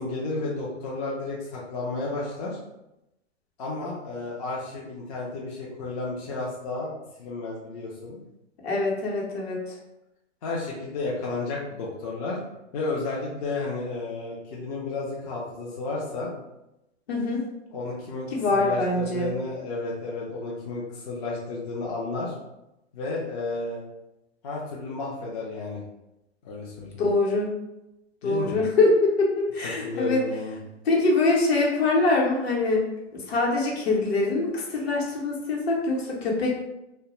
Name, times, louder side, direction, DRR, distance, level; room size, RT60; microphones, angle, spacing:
voice 1, 0.0-2.6 3.6-8.2 10.4-12.4 12.7-16.3 17.7-22.3 22.9-23.8 24.4-25.8 26.4-27.0 28.2-28.6 29.6-30.6, left 3 dB, 35° left, -4 dB, 0.4 m, -32 dB
voice 2, 8.6-9.6 17.1-17.4 18.3-19.3 27.0-27.5 28.2-30.2 30.9-32.8 33.1-36.6, left 2 dB, 55° left, -2 dB, 0.9 m, -23 dB
2.2 x 2.0 x 2.9 m, 0.91 s
hypercardioid pair, 130°, 36 cm